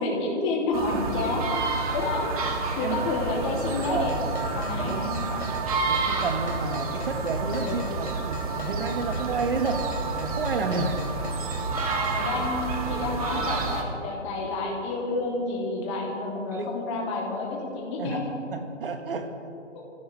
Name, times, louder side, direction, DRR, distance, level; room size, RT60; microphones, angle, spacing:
voice 1, 0.0-1.4 1.9-2.3 2.8-4.1 4.5-5.4 7.6-7.8 12.1-18.2, left 3 dB, 25° left, -2 dB, 3.2 m, -29 dB
sound 1, 0.7-13.8, right 4 dB, 30° right, 1.7 m, -29 dB
sound 2, 3.8-12.2, left 2 dB, 65° left, 2.3 m, -41 dB
voice 2, 3.9-4.2 4.5-5.1 5.8-9.8 10.2-11.0 16.5-16.7 18.0-19.3, right 4 dB, 50° right, 6 dB, 1.9 m, -30 dB
25.5 x 15.5 x 3.5 m, 3.0 s
figure-of-eight pair, 150°, 36 cm